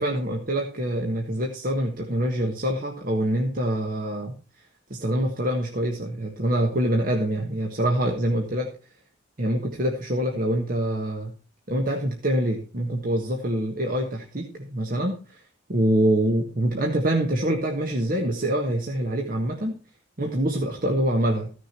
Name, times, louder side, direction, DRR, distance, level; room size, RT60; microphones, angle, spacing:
voice 1, 0.0-4.4 4.9-8.7 9.4-11.3 11.7-15.4 15.7-19.8 20.2-21.5, right 1 dB, 50° right, 2 dB, 1.6 m, -25 dB
15.0 x 6.5 x 4.5 m, 0.36 s
head